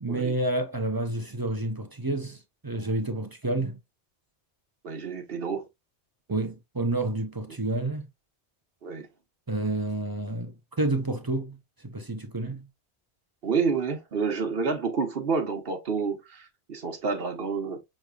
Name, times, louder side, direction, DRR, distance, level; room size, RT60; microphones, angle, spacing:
voice 1, 0.0-3.8 6.3-8.1 9.5-11.6 11.8-12.7, right 2 dB, 25° right, 0.6 m, -29 dB
voice 2, 4.8-5.6 8.8-9.1 13.4-17.8, right 5 dB, 60° right, 1.3 m, -29 dB
6.2 x 3.2 x 2.3 m
omnidirectional pair, 1.1 m